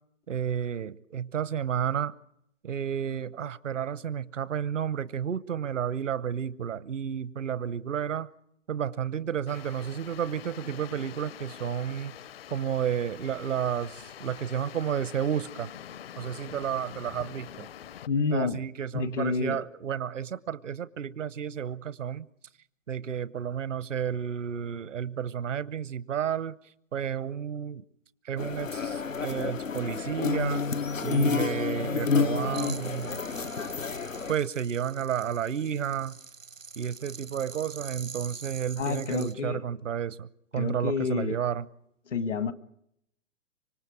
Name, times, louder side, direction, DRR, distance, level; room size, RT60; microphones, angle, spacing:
voice 1, 0.3-2.1 2.6-8.3 8.7-12.1 12.5-15.7 16.2-17.7 18.3-22.3 22.9-26.6 26.9-27.8 28.2-30.6 31.0-33.2 34.3-36.2 36.8-40.3 40.5-41.6, right 8 dB, 75° right, 17 dB, 0.9 m, -31 dB
sound 1, 9.5-18.1, left 10 dB, 50° left, 0.8 m, -45 dB
voice 2, 18.1-18.6 18.9-19.7 38.8-39.6 40.5-41.4 42.1-42.5, left 5 dB, 70° left, 12 dB, 1.8 m, -29 dB
sound 2, 28.4-34.3, left 5 dB, 90° left, 1.0 m, -29 dB
sound 3, 32.5-39.3, right 5 dB, 90° right, 1.3 m, -45 dB
25.5 x 25.5 x 4.9 m, 0.74 s
figure-of-eight pair, 125°, 38 cm